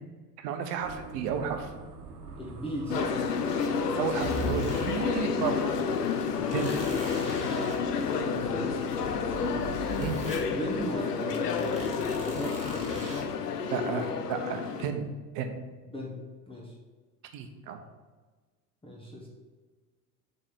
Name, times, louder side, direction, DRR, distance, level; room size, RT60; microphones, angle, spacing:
voice 1, 0.4-1.7 4.0-5.7 6.5-6.8 10.0-10.2 13.7-15.5 17.3-17.8, right 7 dB, 45° right, 6 dB, 1.1 m, -33 dB
sound 1, 0.8-10.9, right 3 dB, 70° right, 1.3 m, -44 dB
voice 2, 2.4-3.2 6.3-6.7 7.5-8.9 10.5-13.2 15.9-16.7 18.8-19.3, equal, 10° left, -3 dB, 1.6 m, -38 dB
sound 2, 2.9-14.9, left 5 dB, 75° left, 0.8 m, -30 dB
sound 3, 4.0-5.0 5.3-5.4 6.5-7.8 8.4-10.4 10.8-11.0 11.3-13.2, equal, 15° right, 2.0 m, -40 dB
7.6 x 4.0 x 6.1 m, 1.4 s
figure-of-eight pair, 75°, 48 cm